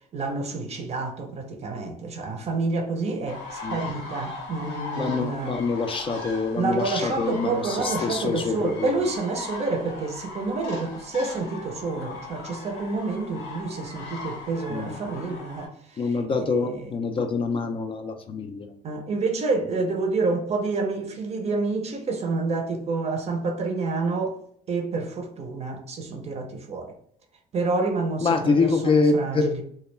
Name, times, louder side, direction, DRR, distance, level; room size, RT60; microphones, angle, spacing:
voice 1, 0.1-5.6 6.6-17.0 18.8-24.4 24.7-27.0 27.5-29.6, right 3 dB, 40° right, 0.5 m, -28 dB
sound 1, 3.3-15.7, left 3 dB, 90° left, 1.2 m, -38 dB
voice 2, 5.0-8.9 14.7-14.9 16.0-18.7 28.2-29.5, left 4 dB, 30° left, 0.3 m, -25 dB
2.2 x 2.1 x 3.1 m
cardioid pair, 110°, 17 cm